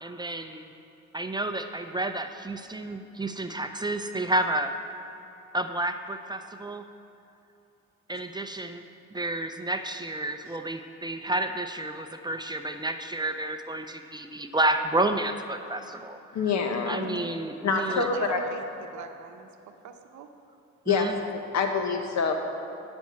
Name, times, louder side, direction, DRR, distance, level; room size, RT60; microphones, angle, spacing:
voice 1, 0.0-0.7 1.1-5.0 5.5-6.9 8.1-8.8 9.1-16.2 16.9-18.1 20.9-21.2, right 1 dB, 15° right, 7 dB, 0.5 m, -30 dB
voice 2, 16.3-17.2 17.6-18.4 20.9-22.3, left 5 dB, 65° left, 4 dB, 1.1 m, -26 dB
voice 3, 17.7-19.5 19.8-20.3, right 7 dB, 70° right, 6 dB, 0.8 m, -42 dB
10.5 x 4.4 x 7.4 m, 2.8 s
cardioid pair, 90°, 30 cm